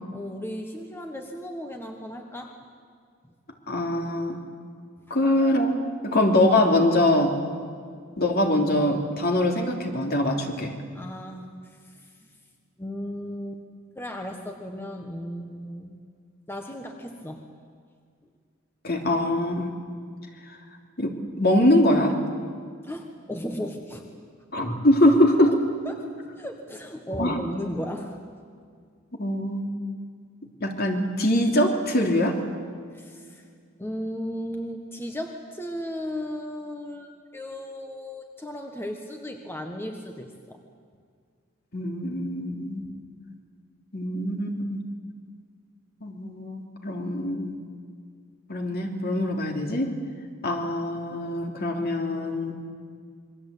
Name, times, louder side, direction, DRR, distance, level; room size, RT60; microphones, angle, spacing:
voice 1, 0.1-2.5 5.1-5.2 10.9-12.1 12.8-13.6 13.9-15.9 16.5-17.4 22.8-24.3 25.1-25.2 25.8-28.2 32.9-33.4 33.8-40.6, equal, 10° left, 3 dB, 1.4 m, -35 dB
voice 2, 3.7-4.4 5.1-7.4 8.2-10.7 18.8-19.7 21.0-22.2 24.5-25.5 27.2-27.4 29.2-29.7 30.6-32.4 41.7-42.9 43.9-44.8 46.0-47.6 48.5-49.9 50.4-52.6, left 1 dB, 50° left, 2 dB, 3.2 m, -23 dB
27.5 x 23.0 x 8.5 m, 2.1 s
head